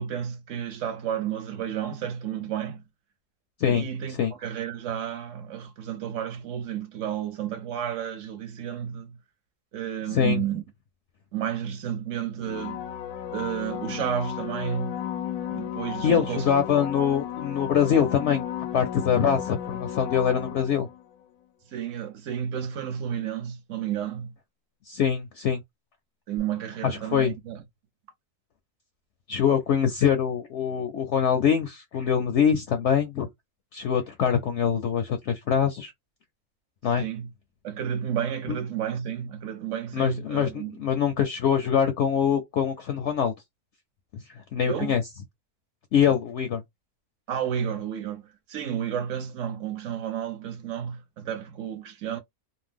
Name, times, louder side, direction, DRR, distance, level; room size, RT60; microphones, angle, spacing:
voice 1, 0.0-2.8 3.7-9.2 9.7-10.6 11.3-12.8 13.3-15.0 15.5-16.9 21.7-24.3 26.3-27.6 37.0-37.3 37.6-40.8 44.6-45.0 47.3-52.2, right 9 dB, 60° right, 1.0 m, -32 dB
voice 2, 10.1-10.4 16.0-18.4 18.7-20.9 24.9-25.6 26.8-27.3 29.3-33.3 33.7-35.9 36.8-37.0 38.5-38.6 39.9-43.3 44.5-45.0 45.9-46.6, left 8 dB, 65° left, 0.7 m, -24 dB
sound 1, 12.4-21.0 26.4-26.5, left 10 dB, 85° left, 1.1 m, -34 dB
2.7 x 2.0 x 3.5 m
omnidirectional pair, 1.6 m